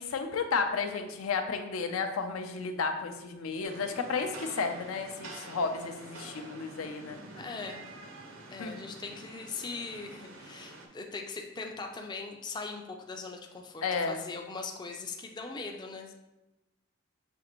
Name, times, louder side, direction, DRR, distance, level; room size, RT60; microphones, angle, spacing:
voice 1, 0.0-7.2 8.6-8.8 13.8-14.2, left 5 dB, 85° left, 6 dB, 0.5 m, -32 dB
Rain, 3.6-10.9, right 2 dB, 75° right, 0.6 m, -47 dB
voice 2, 7.4-7.8 8.5-16.1, left 4 dB, 20° left, 3 dB, 0.3 m, -40 dB
6.1 x 2.4 x 2.9 m, 1.0 s
head